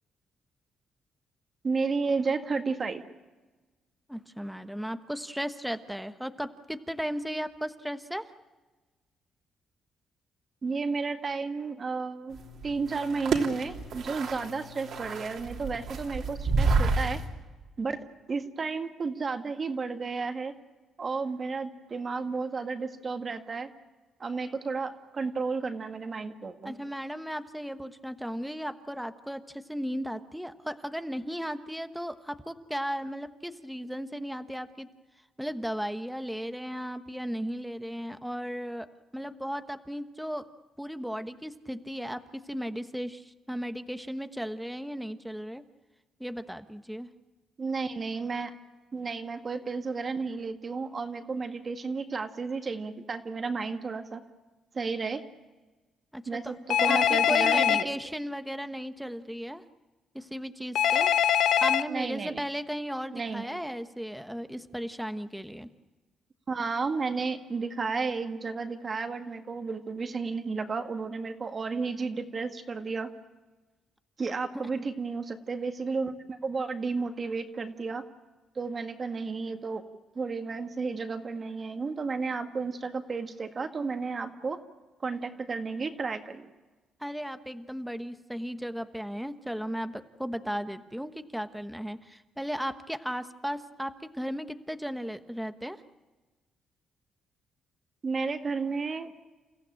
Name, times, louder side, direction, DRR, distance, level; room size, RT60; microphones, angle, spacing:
voice 1, 1.6-3.0 10.6-12.4 12.6-17.2 17.8-20.5 21.0-23.7 24.2-26.7 47.6-48.5 48.9-54.2 54.7-55.2 56.3-57.9 61.9-62.4 63.1-63.5 66.5-73.1 74.2-78.0 78.6-79.8 80.2-84.6 85.0-86.5 98.0-99.1, right 4 dB, 40° right, 6 dB, 1.9 m, -32 dB
voice 2, 4.1-8.3 26.6-34.9 35.4-38.9 39.1-40.5 40.8-45.6 46.2-47.1 56.1-56.5 56.9-59.6 60.1-61.1 61.4-65.7 87.0-95.8, equal, ahead, 9 dB, 1.2 m, -35 dB
sound 1, 12.3-17.3, right 3 dB, 70° right, 3.2 m, -29 dB
Telephone, 56.7-57.8 60.8-61.8, left 10 dB, 70° left, 0.8 m, -23 dB
29.0 x 15.5 x 9.0 m, 1.3 s
cardioid pair, 90°, 0 cm